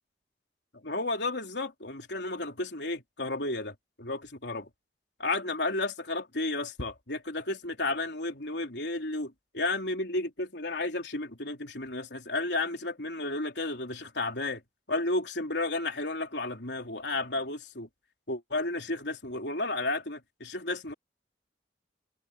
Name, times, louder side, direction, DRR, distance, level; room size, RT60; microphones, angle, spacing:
voice 1, 0.8-4.7 5.2-14.6 14.9-17.9 18.3-20.9, left 2 dB, 75° left, 3.7 m, -32 dB
head